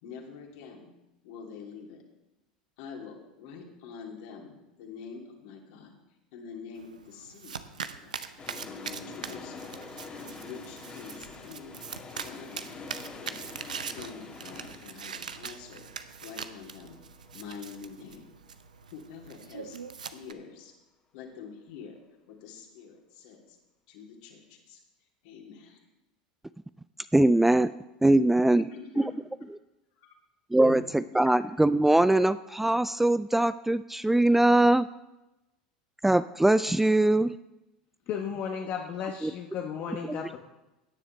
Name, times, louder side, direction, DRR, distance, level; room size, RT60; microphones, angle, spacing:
voice 1, 0.0-0.9 1.2-2.0 2.8-6.0 6.3-8.2 8.6-9.8 10.4-11.8 12.2-12.9 13.2-17.0 17.3-18.3 18.9-19.8 20.1-20.7 21.1-22.0 22.3-23.6 23.9-24.8 25.2-25.8 28.5-29.1 30.0-30.1 30.6-30.8 31.2-31.4, left 6 dB, 60° left, 0 dB, 2.9 m, -46 dB
Domestic sounds home sounds, 6.8-20.3, right 6 dB, 80° right, 0.6 m, -42 dB
sound 1, 8.4-18.2 18.5-18.6, left 4 dB, 25° left, 1.9 m, -46 dB
voice 2, 27.1-27.7 28.0-28.6 30.5-30.8 31.2-34.9 36.0-37.3 39.2-39.3 40.1-40.4, right 1 dB, 5° right, 14 dB, 0.3 m, -22 dB
voice 3, 38.1-40.4, left 7 dB, 45° left, 1 dB, 1.2 m, -34 dB
17.0 x 9.8 x 3.3 m, 0.99 s
figure-of-eight pair, 80°, 4 cm